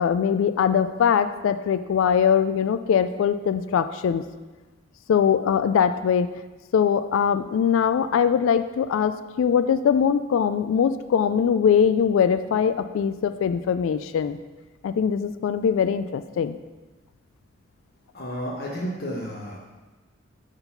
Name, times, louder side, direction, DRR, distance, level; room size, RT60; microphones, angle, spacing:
voice 1, 0.0-4.2 5.1-6.3 6.7-14.4 14.8-16.6, left 7 dB, 75° left, 13 dB, 0.3 m, -22 dB
voice 2, 18.1-19.7, equal, 50° left, -4 dB, 0.9 m, -32 dB
6.9 x 3.9 x 5.5 m, 1.2 s
head